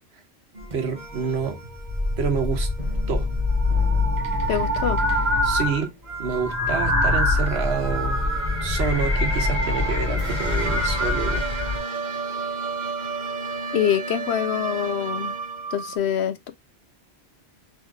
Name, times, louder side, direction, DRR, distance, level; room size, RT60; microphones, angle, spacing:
sound 1, 0.5-16.0, right 4 dB, 45° right, 1.1 m, -34 dB
sound 2, 0.6-0.7 1.1-1.4 1.8-5.9 6.1-11.8, left 2 dB, 15° right, 1.3 m, -24 dB
voice 1, 0.7-1.6 2.2-2.7 3.1-3.3 5.4-5.9 6.2-8.2 8.6-11.5, right 6 dB, 75° right, 1.2 m, -28 dB
voice 2, 4.5-5.0 13.7-15.4 15.7-16.5, left 9 dB, 80° left, 0.9 m, -25 dB
3.8 x 3.1 x 4.5 m
omnidirectional pair, 1.1 m